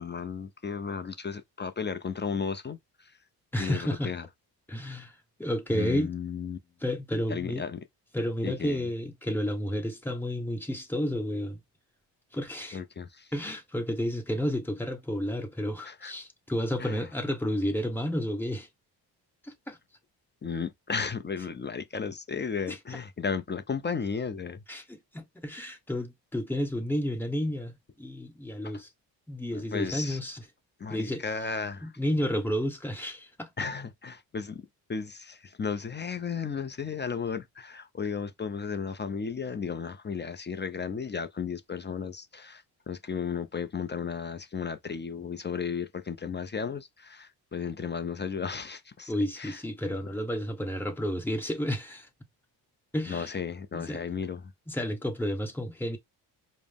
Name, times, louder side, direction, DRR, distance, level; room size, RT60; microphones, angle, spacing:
voice 1, 0.0-3.2 3.6-4.3 5.7-6.6 7.3-7.8 8.4-8.9 12.7-13.3 15.8-16.1 16.8-17.1 20.4-24.6 28.6-28.8 29.5-30.2 30.8-31.9 33.6-34.6 34.9-49.6 53.1-54.5, left 6 dB, 25° left, 0.5 m, -34 dB
voice 2, 3.5-4.1 4.7-5.1 5.4-6.1 6.8-7.6 8.1-11.6 12.3-12.8 13.3-18.7 19.4-19.8 22.7-22.8 24.7-28.9 29.3-30.4 30.9-31.2 31.8-33.5 49.1-52.1 52.9-53.3 53.7-54.0 54.7-56.0, equal, 5° left, 1.2 m, -31 dB
5.0 x 2.1 x 3.5 m
cardioid pair, 75°, 44 cm